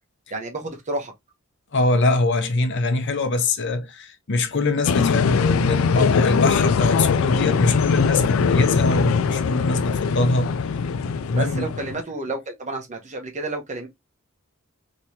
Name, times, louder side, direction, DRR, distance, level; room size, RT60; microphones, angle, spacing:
voice 1, 0.3-1.1 7.2-7.4 11.3-13.9, right 2 dB, 35° right, 1.1 m, -31 dB
voice 2, 1.7-10.5 11.3-11.7, left 2 dB, 60° left, 0.8 m, -23 dB
sound 1, 4.9-12.0, left 5 dB, 75° left, 0.4 m, -21 dB
3.4 x 3.0 x 2.8 m
head